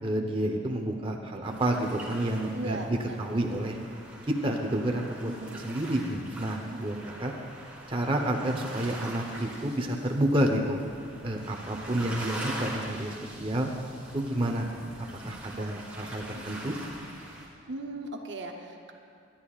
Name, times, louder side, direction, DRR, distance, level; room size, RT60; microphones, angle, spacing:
voice 1, 0.0-3.8 4.3-7.3 7.9-10.8 11.2-13.7 14.1-14.8 15.2-16.7, right 1 dB, 25° right, 1 dB, 0.9 m, -29 dB
sound 1, 1.4-17.5, right 1 dB, 5° right, 2.2 m, -43 dB
voice 2, 2.5-3.2 5.3-5.7 6.7-7.1 15.6-15.7 16.2-16.4 17.7-18.9, right 2 dB, 55° right, 3 dB, 0.7 m, -39 dB
23.5 x 10.5 x 2.4 m, 2.4 s
head